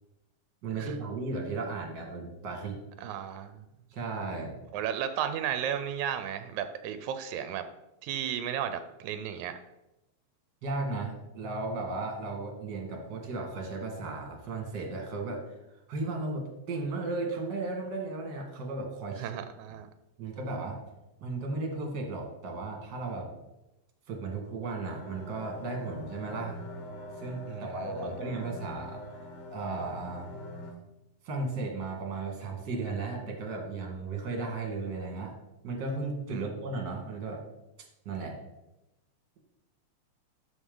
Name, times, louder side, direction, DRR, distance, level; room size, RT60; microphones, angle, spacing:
voice 1, 0.6-2.8 3.9-4.6 10.6-15.6 15.9-19.3 20.2-20.8 21.2-23.3 24.1-26.6 27.2-29.0 29.5-30.3 31.2-35.4 35.6-37.4 38.1-38.4, right 3 dB, 45° right, 2 dB, 2.2 m, -35 dB
voice 2, 3.0-3.6 4.7-7.6 8.0-9.6 19.2-19.9 27.5-28.1 36.3-36.5, right 9 dB, 85° right, 10 dB, 2.0 m, -34 dB
sound 1, 24.9-30.7, equal, 85° left, 3.0 m, -43 dB
12.5 x 5.5 x 3.8 m, 0.94 s
omnidirectional pair, 3.3 m